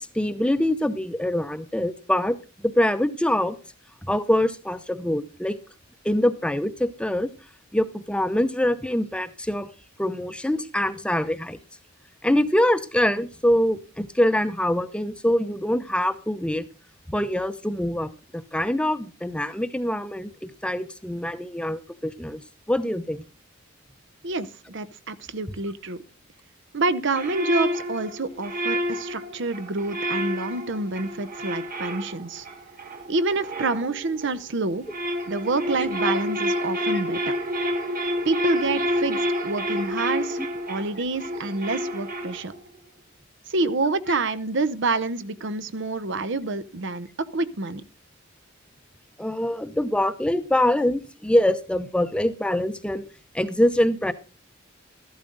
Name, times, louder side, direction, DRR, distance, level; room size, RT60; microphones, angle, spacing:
voice 1, 0.1-2.4 2.6-3.6 4.0-5.6 6.0-7.3 7.7-9.7 10.0-11.6 12.2-16.7 17.1-22.4 22.7-23.2 49.2-53.0 53.3-54.1, left 1 dB, 5° left, 11 dB, 0.7 m, -24 dB
voice 2, 24.2-26.0 26.7-32.5 33.1-34.9 35.3-37.3 38.2-42.5 43.5-47.8, right 3 dB, 60° right, 14 dB, 0.9 m, -27 dB
sound 1, 27.1-34.4 34.7-42.7, equal, 45° right, 2.2 m, -29 dB
13.5 x 12.5 x 3.9 m, 0.33 s
head